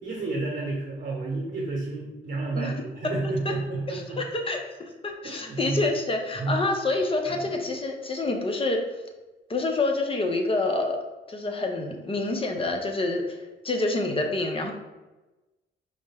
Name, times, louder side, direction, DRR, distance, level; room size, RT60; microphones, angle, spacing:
voice 1, 0.0-4.2 5.2-5.8 6.3-6.6 7.2-7.5, right 2 dB, 50° right, -3 dB, 1.0 m, -31 dB
voice 2, 3.9-8.8 9.5-11.0 11.3-13.4 13.6-14.7, left 2 dB, 30° left, 3 dB, 0.7 m, -27 dB
4.8 x 2.1 x 3.4 m, 1.1 s
cardioid pair, 85°, 19 cm